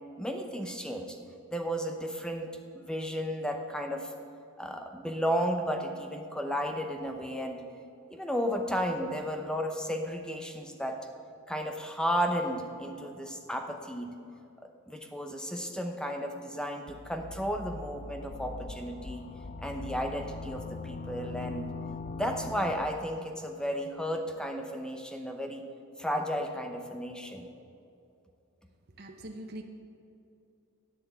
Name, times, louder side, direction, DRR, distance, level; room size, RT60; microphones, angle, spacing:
voice 1, 0.2-1.2 1.5-4.1 4.6-7.6 8.1-11.0 11.5-14.1 14.9-19.2 19.6-21.7 22.1-25.6 26.0-27.5, equal, 5° left, 4 dB, 0.8 m, -33 dB
sound 1, 16.9-23.2, left 3 dB, 30° left, 0.4 m, -41 dB
voice 2, 29.0-29.6, right 1 dB, 45° right, 3 dB, 0.9 m, -42 dB
11.0 x 7.8 x 8.3 m, 2.7 s
head